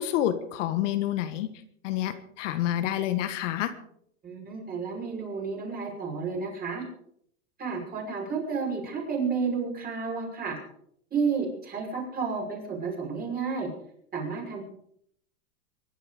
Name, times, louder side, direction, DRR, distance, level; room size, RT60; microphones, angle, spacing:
voice 1, 0.0-1.5 1.8-3.7, left 12 dB, 65° left, 10 dB, 1.6 m, -28 dB
voice 2, 4.2-6.8 7.6-10.6 11.1-13.7 14.1-14.7, right 5 dB, 20° right, 0 dB, 5.9 m, -31 dB
23.5 x 11.0 x 5.0 m, 0.69 s
supercardioid pair, 140°, 40 cm